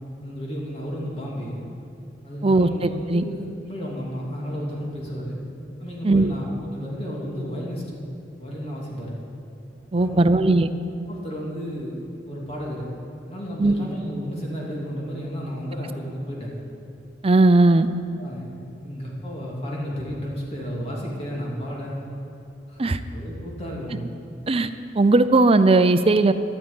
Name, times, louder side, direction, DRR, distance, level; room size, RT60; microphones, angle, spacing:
voice 1, 0.2-1.6 2.2-5.4 5.8-8.0 8.4-9.2 10.0-10.3 11.1-12.0 12.2-12.9 13.3-16.5 18.2-18.5 18.8-22.0 22.7-22.8 23.1-24.0, equal, 35° left, -4 dB, 2.9 m, -32 dB
voice 2, 2.4-3.2 6.0-6.3 9.9-10.7 13.6-13.7 17.2-17.9 22.8-23.0 24.5-24.7 25.0-26.3, right 2 dB, 35° right, 11 dB, 0.5 m, -17 dB
12.0 x 8.7 x 9.7 m, 2.7 s
head